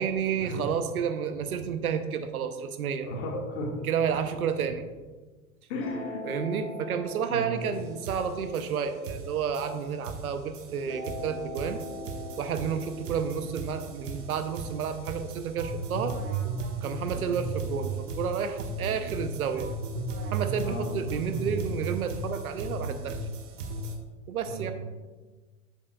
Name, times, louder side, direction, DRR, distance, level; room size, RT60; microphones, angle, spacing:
voice 1, 0.0-3.1 3.8-4.9 6.2-11.8 12.4-16.1 16.8-19.7 20.3-23.2 24.3-24.7, right 7 dB, 75° right, 9 dB, 0.8 m, -31 dB
voice 2, 3.0-3.7 5.7-6.2 7.3-7.6 20.6-20.9 24.5-24.7, left 1 dB, 50° left, 0 dB, 1.8 m, -34 dB
sound 1, 5.8-10.2 10.9-15.8, left 1 dB, 80° left, 1.6 m, -42 dB
sound 2, 7.7-24.0, right 3 dB, 55° right, 1.1 m, -35 dB
7.7 x 7.3 x 2.3 m, 1.3 s
figure-of-eight pair, 90°, 44 cm